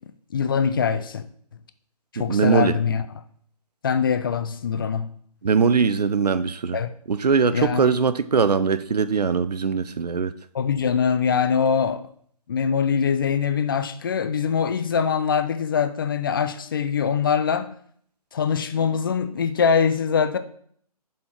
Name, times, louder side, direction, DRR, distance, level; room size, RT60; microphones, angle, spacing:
voice 1, 0.3-1.2 2.1-3.0 3.8-5.1 6.7-6.9 7.5-8.0 10.5-12.1 12.5-17.7 18.3-20.4, left 6 dB, 35° left, 0.5 m, -23 dB
voice 2, 2.2-2.8 5.4-6.8 7.1-10.3, right 5 dB, 80° right, 0.6 m, -21 dB
7.5 x 4.3 x 4.5 m
figure-of-eight pair, 150°, 20 cm